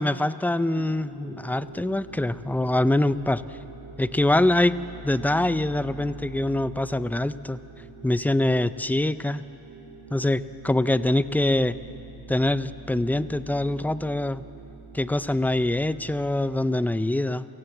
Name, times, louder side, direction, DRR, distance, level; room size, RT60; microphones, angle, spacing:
voice 1, 0.0-3.4 4.0-4.8 5.0-7.6 8.0-9.4 10.1-11.8 12.3-14.4 14.9-17.5, left 1 dB, 5° left, 14 dB, 0.6 m, -24 dB
sound 1, 0.7-16.7, right 4 dB, 75° right, 2.2 m, -45 dB
29.5 x 17.5 x 7.9 m, 2.8 s
cardioid pair, 90°, 42 cm